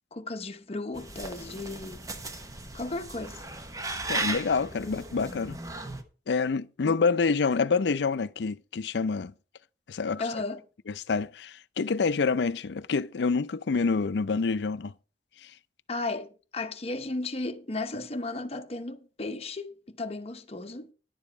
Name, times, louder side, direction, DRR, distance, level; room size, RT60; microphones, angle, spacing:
voice 1, 0.1-2.0 2.7-3.4 6.8-7.0 10.2-10.6 15.9-20.9, left 2 dB, 35° left, 0.8 m, -35 dB
sound 1, 0.9-6.0, right 2 dB, 20° right, 0.9 m, -36 dB
voice 2, 4.1-5.6 6.3-9.3 9.9-10.4 10.9-14.9, left 4 dB, 70° left, 0.5 m, -27 dB
11.0 x 7.2 x 4.5 m
head